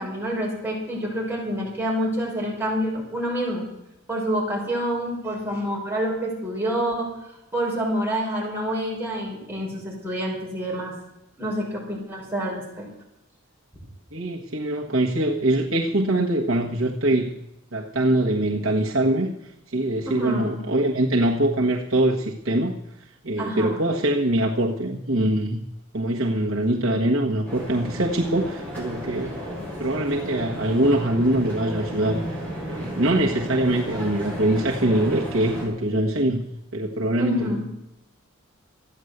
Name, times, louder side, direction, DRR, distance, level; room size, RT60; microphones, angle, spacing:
voice 1, 0.0-3.7 4.1-7.1 7.5-10.9 11.4-12.9 20.0-20.6 23.4-23.9 37.2-37.7, equal, 10° right, -4 dB, 5.8 m, -27 dB
voice 2, 14.1-17.3 17.7-19.3 19.7-25.6 25.9-29.4 29.8-32.2 32.7-36.4 36.7-37.6, right 1 dB, 80° right, -1 dB, 1.5 m, -23 dB
sound 1, 27.4-35.7, equal, 10° left, 7.3 m, -34 dB
14.0 x 10.0 x 8.0 m, 0.89 s
head